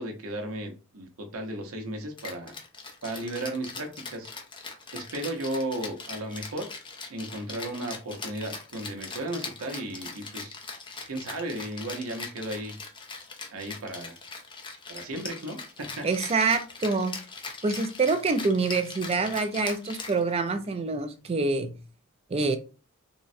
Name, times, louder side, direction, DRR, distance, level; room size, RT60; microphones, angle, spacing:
voice 1, 0.0-2.5 3.0-4.3 4.9-6.7 7.1-10.6 11.1-12.7 13.5-14.2 14.9-16.1, right 1 dB, 70° right, 4 dB, 0.7 m, -35 dB
Rattle (instrument), 2.2-20.7, left 4 dB, 25° left, 0.5 m, -41 dB
voice 2, 16.0-17.2 17.6-21.8 22.3-22.6, right 4 dB, 30° right, 8 dB, 0.3 m, -26 dB
3.7 x 2.0 x 2.6 m, 0.34 s
head